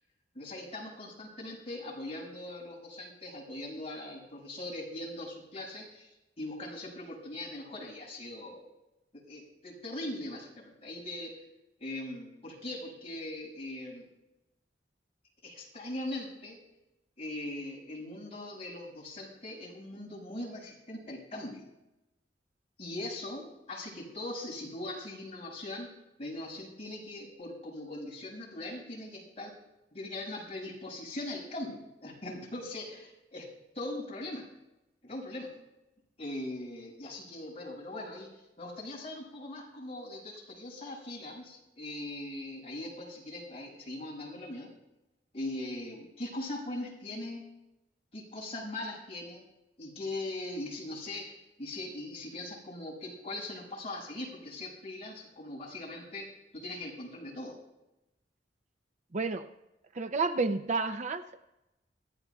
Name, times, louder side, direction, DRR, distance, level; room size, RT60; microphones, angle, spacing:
voice 1, 0.3-6.1 6.4-8.7 9.1-11.4 11.8-14.1 15.4-16.6 17.2-21.6 22.8-25.9 26.2-29.5 29.9-33.5 33.7-34.5 35.0-35.5 36.2-44.7 45.3-47.4 48.1-49.4 49.8-57.6, left 1 dB, 35° left, -3 dB, 6.4 m, -40 dB
voice 2, 59.1-59.5 59.9-61.4, right 4 dB, 40° right, 10 dB, 0.5 m, -30 dB
26.5 x 15.5 x 2.4 m, 0.94 s
head